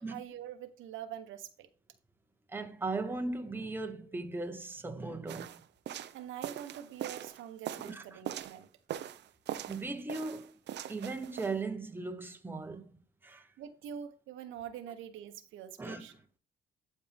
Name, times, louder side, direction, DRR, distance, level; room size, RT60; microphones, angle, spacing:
voice 1, 0.0-1.7 6.1-8.7 13.6-16.1, right 9 dB, 85° right, 1.2 m, -45 dB
voice 2, 2.5-5.5 7.8-8.2 9.7-10.6 10.9-12.9 13.2-13.5 15.8-16.1, right 3 dB, 10° right, 1.2 m, -38 dB
sound 1, 5.3-8.6 8.9-9.8 10.1-11.5, right 11 dB, 60° right, 0.7 m, -41 dB
12.0 x 4.4 x 3.5 m
cardioid pair, 115°, 20 cm